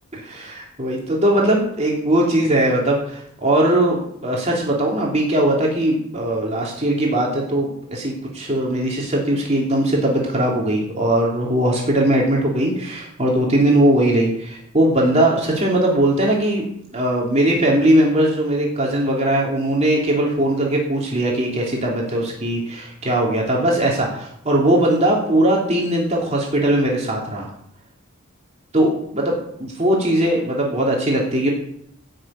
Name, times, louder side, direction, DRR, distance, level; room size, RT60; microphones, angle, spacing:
voice 1, 0.1-16.6 16.9-27.5 28.7-31.5, right 1 dB, 30° right, -2 dB, 2.9 m, -19 dB
16.0 x 6.7 x 8.6 m, 0.71 s
head